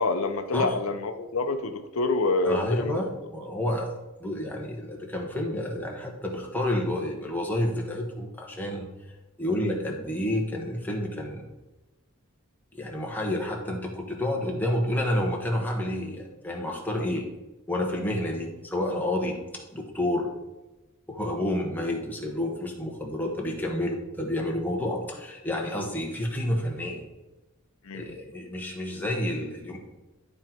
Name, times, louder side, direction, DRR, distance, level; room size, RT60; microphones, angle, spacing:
voice 1, 0.0-2.9 23.7-23.8 27.8-28.2, left 3 dB, 80° left, 7 dB, 0.6 m, -27 dB
voice 2, 2.4-8.9 9.4-11.5 12.7-17.3 17.7-20.3 21.1-27.0 27.9-29.8, left 1 dB, 10° left, -1 dB, 1.3 m, -29 dB
11.5 x 3.9 x 4.5 m, 1.0 s
head